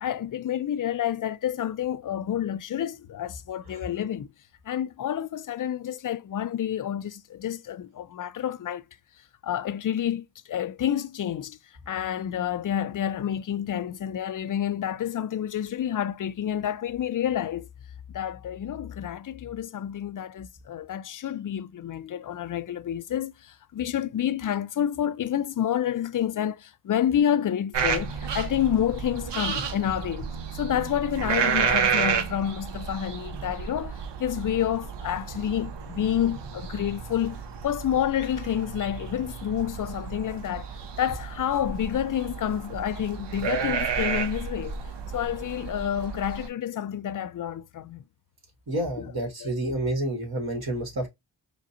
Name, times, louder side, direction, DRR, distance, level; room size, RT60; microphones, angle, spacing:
voice 1, 0.0-4.3 4.7-8.8 9.4-11.6 11.9-17.7 18.1-40.7 41.0-44.8 45.1-48.0 49.0-49.1 49.4-49.5, left 10 dB, 50° left, 0.4 m, -29 dB
sound 1, 27.7-46.5, right 7 dB, 75° right, 0.8 m, -31 dB
voice 2, 48.7-51.1, right 1 dB, 60° right, 1.8 m, -29 dB
4.9 x 2.2 x 2.8 m
cardioid pair, 70°, 43 cm